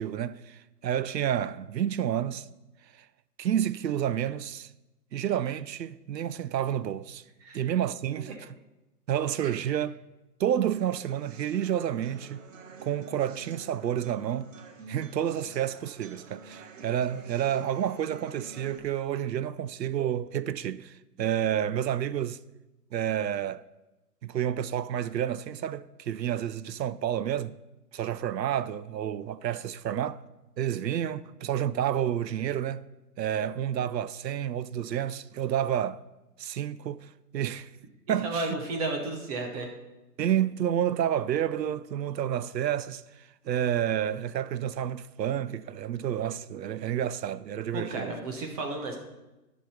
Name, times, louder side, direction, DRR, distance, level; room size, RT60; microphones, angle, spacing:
voice 1, 0.0-2.5 3.0-3.1 3.4-4.7 5.1-7.2 7.5-8.5 9.1-10.0 10.4-12.4 12.8-14.5 14.9-22.4 22.9-23.6 24.2-27.6 27.9-30.2 30.6-32.8 33.2-36.0 36.4-37.7 38.1-38.6 40.2-48.1, right 10 dB, 85° right, 0.6 m, -30 dB
sound 1, 10.8-18.8, right 3 dB, 50° right, 1.2 m, -48 dB
voice 2, 38.1-39.7 47.7-49.0, right 2 dB, 25° right, 0.9 m, -33 dB
11.0 x 5.3 x 5.7 m
hypercardioid pair, 145°, 49 cm